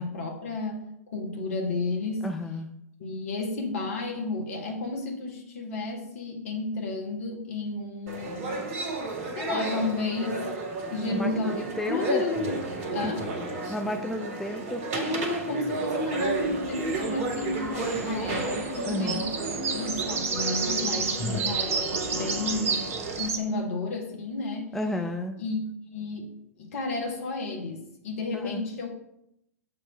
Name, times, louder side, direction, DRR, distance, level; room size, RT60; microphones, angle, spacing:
voice 1, 0.0-2.3 3.0-8.7 9.3-10.4 10.9-11.5 11.9-12.6 12.9-13.3 14.9-19.3 19.7-22.9 23.2-24.7 25.4-25.6 25.9-26.3 26.6-28.9, left 3 dB, 55° left, 1 dB, 1.7 m, -32 dB
voice 2, 2.2-2.7 11.1-12.2 13.0-13.1 13.7-14.8 18.8-19.3 21.2-21.5 24.7-25.4 28.3-28.6, left 1 dB, ahead, 4 dB, 0.4 m, -32 dB
sound 1, 8.1-23.3, right 2 dB, 35° right, 1.6 m, -32 dB
sound 2, 16.1-23.4, right 5 dB, 60° right, 0.9 m, -32 dB
6.8 x 3.2 x 6.0 m, 0.79 s
figure-of-eight pair, 100°, 9 cm